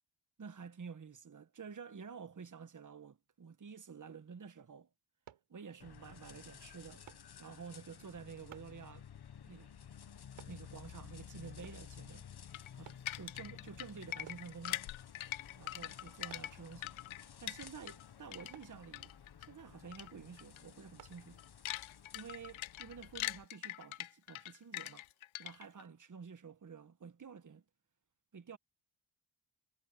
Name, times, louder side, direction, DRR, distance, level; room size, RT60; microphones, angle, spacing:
voice 1, 0.4-4.9 5.5-7.0 7.4-9.1 9.4-9.7 10.5-12.3 12.8-14.9 15.6-16.9 17.4-19.1 19.4-21.4 22.1-25.1 25.4-27.6 28.3-28.6, right 6 dB, 40° right, 1.5 m, -50 dB
sound 1, 5.3-5.5 7.1-7.3 8.5-8.8 10.4-10.6 11.6-11.9 12.9-13.1 14.3-14.5 16.3-16.6 18.5-18.8 21.0-21.2 21.8-21.9, right 10 dB, 85° right, 4.4 m, -56 dB
sound 2, 5.8-23.5, left 8 dB, 50° left, 1.4 m, -54 dB
sound 3, 12.5-18.0 18.3-19.5 19.9-20.1 20.4-20.6 21.0-25.8, left 15 dB, 75° left, 0.7 m, -43 dB
cardioid pair, 65°, 49 cm